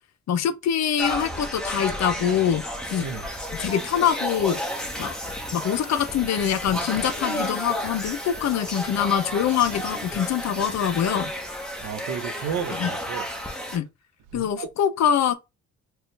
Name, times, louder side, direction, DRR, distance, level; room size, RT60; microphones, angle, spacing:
voice 1, 0.3-2.6 2.9-3.1 3.6-4.6 5.0-5.1 5.5-11.3 12.8-12.9 13.7-13.8 14.3-15.3, left 9 dB, 60° left, 0.7 m, -24 dB
sound 1, 1.0-13.8, equal, ahead, 1.0 m, -32 dB
voice 2, 11.8-13.3 14.3-14.7, right 7 dB, 80° right, 0.8 m, -32 dB
4.5 x 2.4 x 3.2 m
cardioid pair, 90°, 30 cm